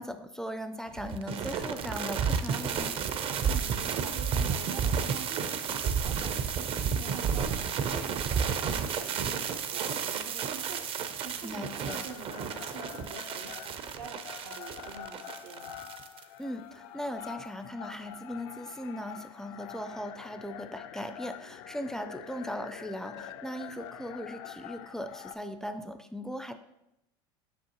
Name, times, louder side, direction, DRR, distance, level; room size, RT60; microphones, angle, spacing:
voice 1, 0.0-3.0 11.4-12.0 16.4-26.5, equal, 5° left, 9 dB, 0.4 m, -38 dB
sound 1, 1.0-16.2, right 6 dB, 45° right, 0.6 m, -32 dB
voice 2, 3.4-15.7, right 5 dB, 80° right, 5 dB, 0.9 m, -46 dB
sound 2, 11.8-25.3, left 11 dB, 70° left, 0.4 m, -46 dB
6.2 x 5.4 x 2.9 m, 0.87 s
supercardioid pair, 95°, 13 cm